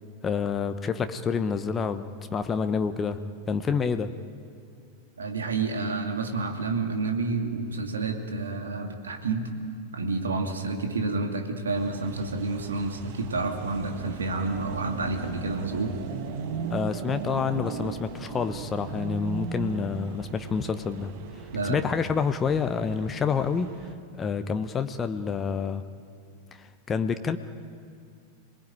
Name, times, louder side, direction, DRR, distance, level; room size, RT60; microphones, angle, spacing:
voice 1, 0.2-3.2 3.5-4.1 16.7-21.1 21.6-23.9 24.2-25.8 26.6-27.4, left 6 dB, 20° left, 9 dB, 1.0 m, -28 dB
voice 2, 5.2-9.5 9.9-15.9 21.5-21.9, right 3 dB, 70° right, 4 dB, 2.5 m, -29 dB
sound 1, 11.8-23.9, right 7 dB, 50° right, 1.7 m, -38 dB
26.5 x 21.0 x 9.2 m, 2.3 s
figure-of-eight pair, 90°, 0 cm